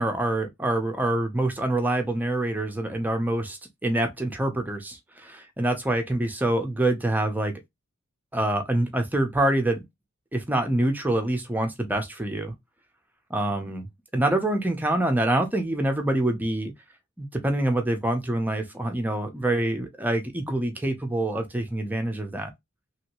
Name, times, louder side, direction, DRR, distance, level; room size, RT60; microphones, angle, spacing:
voice 1, 0.0-7.5 8.3-9.8 10.3-12.5 13.3-16.7 17.2-22.5, right 1 dB, 10° right, 0.6 m, -26 dB
3.0 x 2.7 x 2.9 m
head